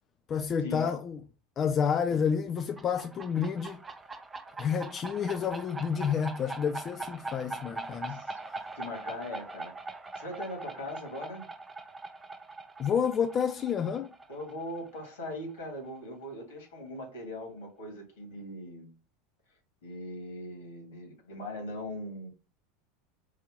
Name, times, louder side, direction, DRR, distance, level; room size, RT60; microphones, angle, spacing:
voice 1, 0.3-1.2 1.6-3.8 4.6-8.2 12.8-14.1, left 7 dB, 30° left, 0.3 m, -29 dB
sound 1, 2.6-16.0, right 3 dB, 15° right, 0.6 m, -42 dB
voice 2, 8.1-8.4 8.7-11.5 14.3-18.9 19.8-22.3, left 1 dB, 65° left, 2.0 m, -40 dB
4.8 x 2.7 x 3.6 m
figure-of-eight pair, 80°, 0 cm